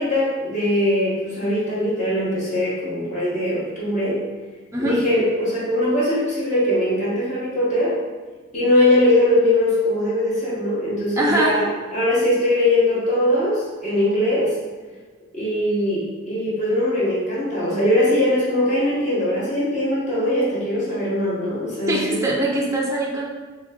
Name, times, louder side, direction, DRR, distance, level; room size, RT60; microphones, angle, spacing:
voice 1, 0.0-4.2 4.8-8.0 8.5-11.7 11.9-14.6 15.3-22.2, left 1 dB, 35° left, -8 dB, 1.0 m, -21 dB
voice 2, 11.2-11.7 21.9-23.2, right 1 dB, 15° right, -2 dB, 0.4 m, -22 dB
3.5 x 3.3 x 3.5 m, 1.3 s
head